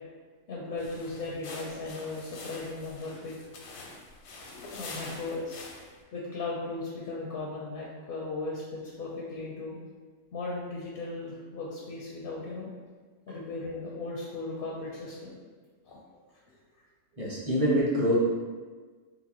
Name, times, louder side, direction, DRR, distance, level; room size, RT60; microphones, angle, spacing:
voice 1, 0.5-3.3 4.7-5.6 6.1-9.8 10.3-12.7 13.3-15.4 15.8-16.0, left 3 dB, 60° left, -4 dB, 0.6 m, -37 dB
sound 1, 0.8-6.0, left 3 dB, 90° left, 1.0 m, -45 dB
voice 2, 17.2-18.1, equal, 30° right, -6 dB, 0.7 m, -25 dB
3.8 x 2.5 x 2.9 m, 1.4 s
omnidirectional pair, 1.4 m